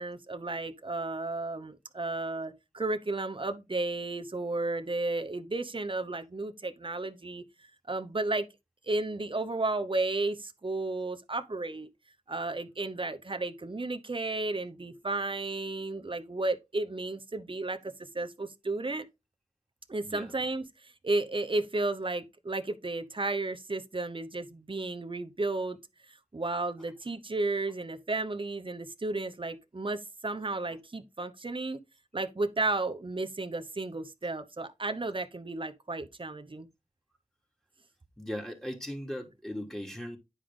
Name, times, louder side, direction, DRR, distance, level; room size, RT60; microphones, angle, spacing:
voice 1, 0.0-7.4 7.9-8.5 8.9-11.9 12.3-19.1 19.9-25.8 26.1-31.8 32.1-36.7, right 2 dB, 40° right, 0.9 m, -33 dB
voice 2, 38.2-40.2, equal, 5° left, 2.9 m, -38 dB
9.8 x 4.9 x 3.8 m
wide cardioid pair, 40°, 13 cm